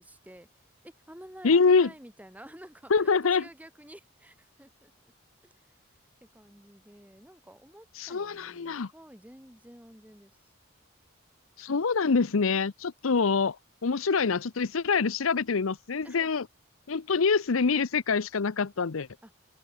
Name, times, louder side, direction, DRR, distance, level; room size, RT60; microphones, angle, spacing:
voice 1, 0.0-5.1 5.4-5.8 6.2-10.5 16.0-16.4 19.2-19.3, right 1 dB, 10° right, 4.0 m, -51 dB
voice 2, 1.4-1.9 2.9-3.4 8.0-8.9 11.6-13.6 13.8-16.4 16.9-19.1, left 5 dB, 90° left, 0.7 m, -25 dB
open air
head